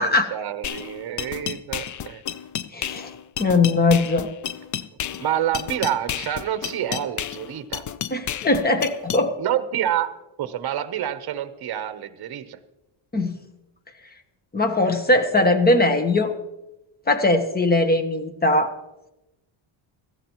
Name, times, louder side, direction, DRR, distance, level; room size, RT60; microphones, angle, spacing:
voice 1, 0.0-2.2 5.2-7.8 9.4-10.1 10.4-12.6, right 11 dB, 50° right, 12 dB, 0.9 m, -28 dB
sound 1, 0.6-9.2, left 10 dB, 40° left, 0.4 m, -32 dB
voice 2, 2.7-3.1 3.4-4.3 8.1-9.3 13.1-13.4 14.5-16.3 17.1-18.8, left 2 dB, 20° left, 8 dB, 1.0 m, -20 dB
17.0 x 14.0 x 3.0 m, 0.95 s
cardioid pair, 145°, 48 cm